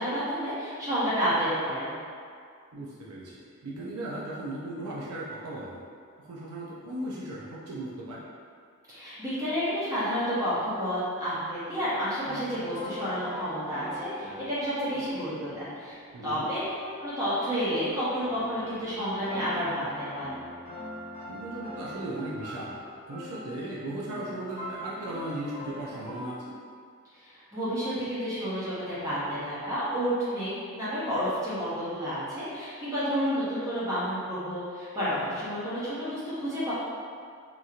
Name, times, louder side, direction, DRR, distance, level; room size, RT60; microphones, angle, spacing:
voice 1, 0.0-1.9 8.9-16.6 17.0-20.3 27.2-36.7, equal, 15° right, -12 dB, 0.7 m, -30 dB
voice 2, 2.7-5.8 6.2-8.2 16.1-16.5 21.3-22.8 23.1-26.6, right 1 dB, 80° right, -6 dB, 0.4 m, -37 dB
sound 1, 11.8-26.3, left 1 dB, 35° left, 0.9 m, -43 dB
2.9 x 2.7 x 2.4 m, 2.2 s
head